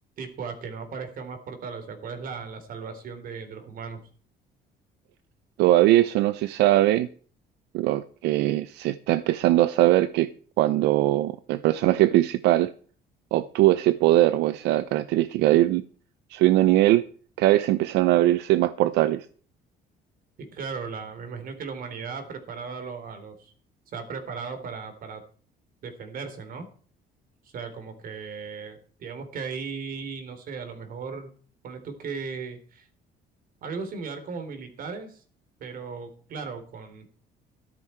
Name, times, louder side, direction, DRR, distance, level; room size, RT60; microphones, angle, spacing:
voice 1, 0.2-4.0 20.4-23.5 23.9-25.2 25.8-26.7 27.5-31.3 31.6-32.9 33.6-35.2 35.6-37.1, right 5 dB, 60° right, 3.6 m, -36 dB
voice 2, 5.6-7.1 7.7-10.3 10.6-12.7 13.3-15.8 16.3-17.0 17.4-19.2, right 15 dB, 85° right, 0.7 m, -21 dB
13.5 x 12.0 x 4.5 m
cardioid pair, 110°, 17 cm